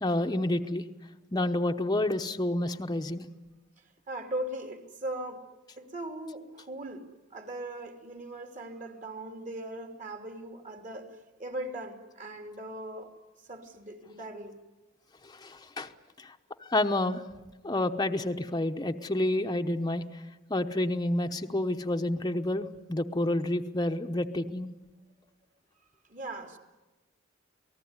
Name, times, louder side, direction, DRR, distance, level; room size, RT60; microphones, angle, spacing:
voice 1, 0.0-0.8 1.3-3.3 15.2-15.9 16.2-16.3 16.7-17.3 17.6-20.0 20.5-24.7, left 1 dB, 20° left, 0.9 m, -29 dB
voice 2, 4.1-5.5 5.8-13.1 13.5-14.6 26.1-26.6, right 1 dB, 40° right, 2.8 m, -39 dB
28.0 x 19.0 x 9.6 m
head